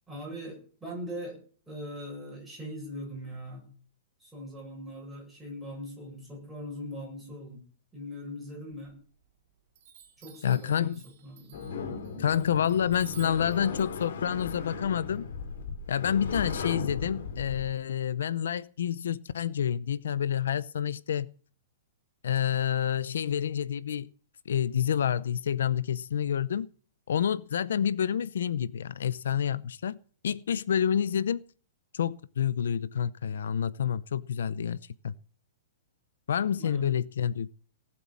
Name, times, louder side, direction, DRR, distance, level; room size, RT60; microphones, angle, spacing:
voice 1, 0.1-1.4 1.7-3.7 4.2-7.6 7.9-9.0 10.2-11.8 36.6-37.0, equal, ahead, 7.5 m, -41 dB
Chime, 8.7-9.4 9.7-15.6, right 9 dB, 40° right, 4.2 m, -55 dB
voice 2, 10.4-11.0 12.2-15.3 15.9-21.3 22.2-24.1 24.5-26.7 27.1-30.0 30.2-31.4 31.9-35.1 36.3-37.5, left 9 dB, 80° left, 0.7 m, -28 dB
sound 1, 11.5-17.7, left 5 dB, 65° left, 3.0 m, -37 dB
18.5 x 7.9 x 7.3 m
hypercardioid pair, 175°, 0 cm